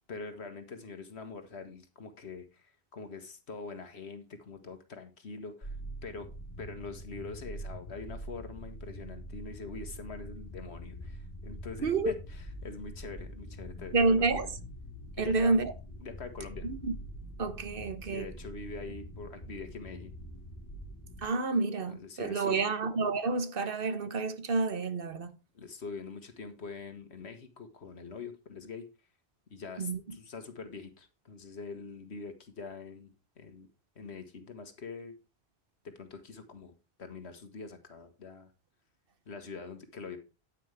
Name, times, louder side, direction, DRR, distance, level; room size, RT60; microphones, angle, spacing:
voice 1, 0.1-5.8 6.0-6.3 6.6-14.0 14.3-14.5 15.2-15.5 16.0-16.7 18.0-20.1 21.9-22.6 25.5-28.9 29.5-33.7 33.9-35.1 35.8-38.5 39.2-40.2, left 4 dB, 90° left, 1.8 m, -44 dB
sound 1, 5.6-21.2, equal, 45° left, 2.8 m, -44 dB
voice 2, 11.8-12.1 13.9-14.5 15.2-15.7 16.6-16.9 17.4-18.3 21.2-25.3 29.8-30.2, right 3 dB, 60° right, 1.2 m, -29 dB
9.5 x 9.5 x 3.4 m
omnidirectional pair, 1.1 m